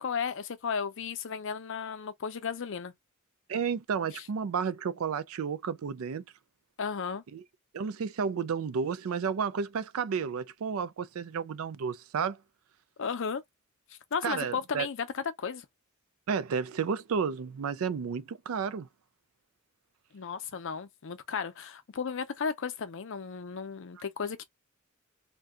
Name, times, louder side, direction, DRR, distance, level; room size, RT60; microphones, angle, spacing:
voice 1, 0.0-2.9 4.1-4.2 6.8-7.2 13.0-13.4 14.1-15.7 20.1-24.4, left 6 dB, 60° left, 0.5 m, -34 dB
voice 2, 3.5-6.2 7.3-7.4 7.7-12.4 14.2-14.9 16.3-18.9, right 6 dB, 75° right, 0.4 m, -32 dB
2.6 x 2.2 x 3.5 m
head